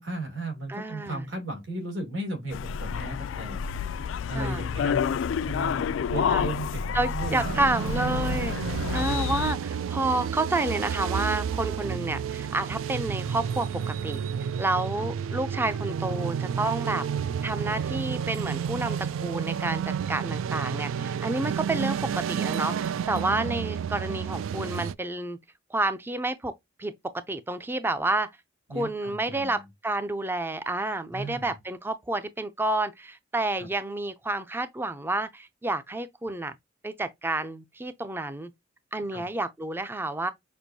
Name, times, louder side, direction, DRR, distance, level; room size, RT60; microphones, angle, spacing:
voice 1, 0.0-3.6 4.3-7.6 8.9-9.1 15.0-15.1 28.7-29.6 31.1-31.5 33.6-33.7 39.1-39.3, right 1 dB, 70° right, 2.4 m, -36 dB
voice 2, 0.7-1.2 4.3-4.6 6.2-6.4 6.9-8.6 8.9-14.2 14.6-17.0 17.4-25.4 25.7-28.3 28.7-36.5 36.8-38.5 38.9-40.3, right 2 dB, 10° right, 0.4 m, -30 dB
sound 1, 2.5-9.5, left 7 dB, 70° left, 0.3 m, -29 dB
sound 2, 7.2-24.9, right 7 dB, 90° right, 0.3 m, -31 dB
6.1 x 2.5 x 2.7 m
head